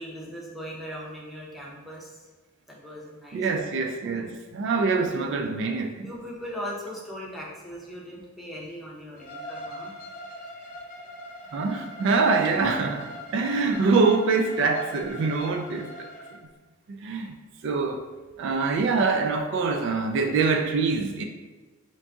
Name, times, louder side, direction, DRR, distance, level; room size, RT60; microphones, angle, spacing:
voice 1, 0.0-2.3 2.7-3.5 4.0-4.3 4.7-5.5 6.0-9.9, equal, ahead, -4 dB, 0.7 m, -39 dB
voice 2, 3.3-6.1 11.5-13.0 13.3-16.1 16.9-17.3 17.6-18.0 18.4-21.3, right 4 dB, 60° right, 5 dB, 0.3 m, -24 dB
Bowed string instrument, 9.2-16.4, left 1 dB, 40° left, 0.6 m, -42 dB
3.9 x 2.5 x 3.5 m, 1.3 s
head